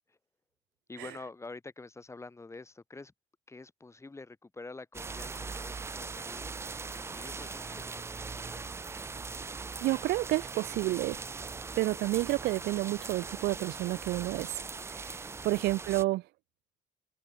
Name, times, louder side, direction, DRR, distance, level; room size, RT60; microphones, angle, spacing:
voice 1, 0.9-3.1 3.5-6.6 6.9-8.7 15.5-15.6, left 3 dB, 15° left, 2.7 m, -47 dB
sound 1, 4.9-16.0, right 4 dB, 15° right, 0.4 m, -40 dB
voice 2, 9.8-11.2 11.8-15.2 15.4-16.2, right 18 dB, 75° right, 0.6 m, -30 dB
cardioid pair, 110°, 17 cm